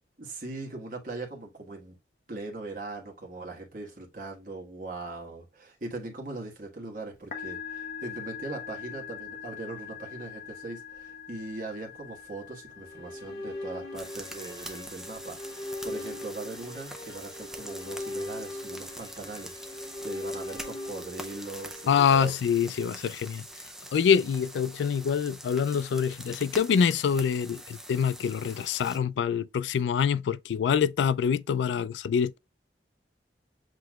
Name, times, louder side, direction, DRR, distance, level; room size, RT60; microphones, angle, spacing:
voice 1, 0.2-2.0 2.3-22.3, right 2 dB, 50° right, 1.4 m, -40 dB
Musical instrument, 7.1-21.9, left 8 dB, 45° left, 1.0 m, -45 dB
sound 1, 12.8-23.0, left 1 dB, 20° left, 1.4 m, -40 dB
sound 2, 13.9-29.0, right 1 dB, 5° right, 0.5 m, -44 dB
voice 2, 21.9-23.4 23.9-32.4, left 7 dB, 85° left, 0.3 m, -25 dB
7.7 x 2.9 x 2.3 m
head